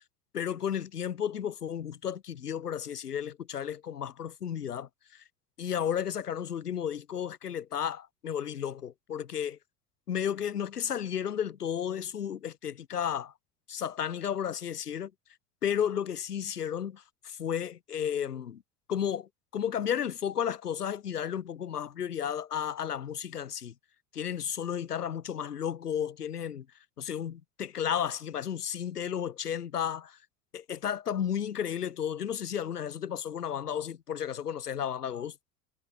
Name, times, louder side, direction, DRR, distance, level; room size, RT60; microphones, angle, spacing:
voice 1, 0.3-5.2 5.6-9.6 10.1-13.3 13.7-15.1 15.6-18.6 18.9-23.7 24.1-26.7 27.0-30.2 30.5-35.4, left 9 dB, 80° left, 1.9 m, -33 dB
figure-of-eight pair, 70°, 46 cm